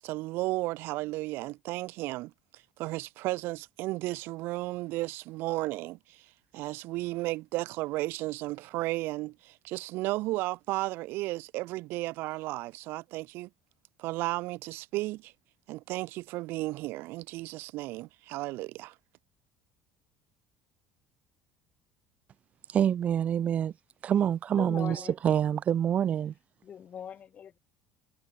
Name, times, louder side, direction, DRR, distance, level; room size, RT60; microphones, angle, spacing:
voice 1, 0.0-2.3 2.8-6.2 6.5-13.5 14.0-15.3 15.7-18.9, right 20 dB, 65° right, 1.4 m, -34 dB
voice 2, 22.7-23.7 24.0-26.3, right 9 dB, 35° right, 1.1 m, -26 dB
voice 3, 24.5-25.1 26.6-27.6, left 8 dB, 35° left, 2.2 m, -41 dB
cardioid pair, 140°, 4 cm